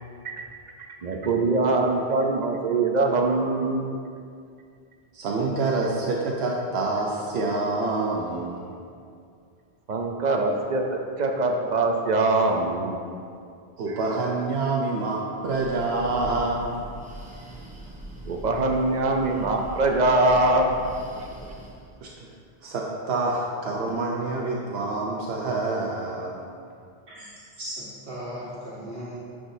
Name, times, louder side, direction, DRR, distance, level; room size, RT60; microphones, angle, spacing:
voice 1, 1.0-3.9 9.9-13.0 13.9-14.0 18.3-20.8 21.2-21.3, right 2 dB, 50° right, 2 dB, 0.6 m, -23 dB
voice 2, 5.1-8.7 13.8-16.8 22.0-22.3 22.6-26.4, right 3 dB, 85° right, -2 dB, 0.9 m, -27 dB
Breathing, 15.4-22.0, right 1 dB, 10° right, 0.8 m, -41 dB
voice 3, 27.1-29.1, equal, 70° right, -10 dB, 1.4 m, -37 dB
9.9 x 4.9 x 2.7 m, 2.4 s
omnidirectional pair, 1.0 m